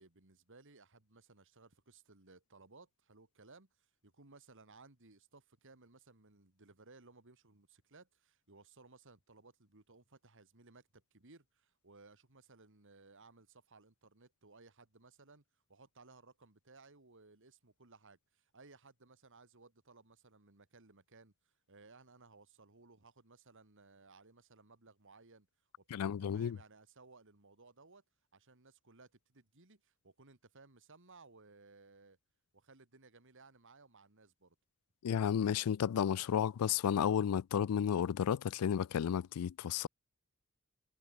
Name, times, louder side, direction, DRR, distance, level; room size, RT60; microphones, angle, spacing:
voice 1, 0.0-25.5 25.8-28.0 28.3-32.2 32.5-34.6, right 3 dB, 60° right, 2.6 m, -61 dB
voice 2, 25.9-26.6 35.0-39.9, left 8 dB, 85° left, 0.4 m, -32 dB
head